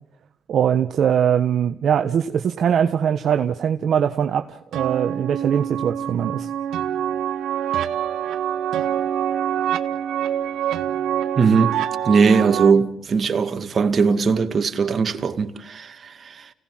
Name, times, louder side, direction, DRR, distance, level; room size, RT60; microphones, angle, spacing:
voice 1, 0.5-6.5, right 8 dB, 65° right, 1.3 m, -21 dB
sound 1, 4.7-12.7, right 10 dB, 80° right, 1.5 m, -25 dB
voice 2, 11.4-11.8 12.1-16.5, right 5 dB, 45° right, 2.2 m, -19 dB
30.0 x 18.0 x 7.7 m
cardioid pair, 90°, 0 cm